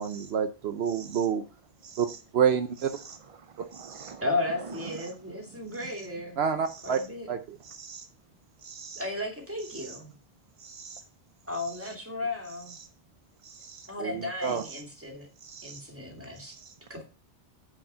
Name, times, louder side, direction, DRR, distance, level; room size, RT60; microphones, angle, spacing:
voice 1, 0.0-1.4 2.0-2.1 2.3-2.9 6.4-7.0 7.3-7.6 14.0-14.6, right 7 dB, 70° right, 0.9 m, -27 dB
voice 2, 0.9-1.2 1.8-2.2 3.0-3.2 3.7-4.2 7.6-8.0 8.6-9.0 9.8-10.0 10.6-11.0 13.4-13.9 14.7-14.8 15.4-15.8 16.4-16.6, right 6 dB, 40° right, 0.5 m, -45 dB
voice 3, 4.2-6.4 6.8-7.3 9.0-10.1 11.5-12.8 13.9-15.3 15.6-16.6 16.9-17.0, left 2 dB, 10° right, 2.5 m, -34 dB
8.9 x 5.1 x 5.6 m
omnidirectional pair, 1.2 m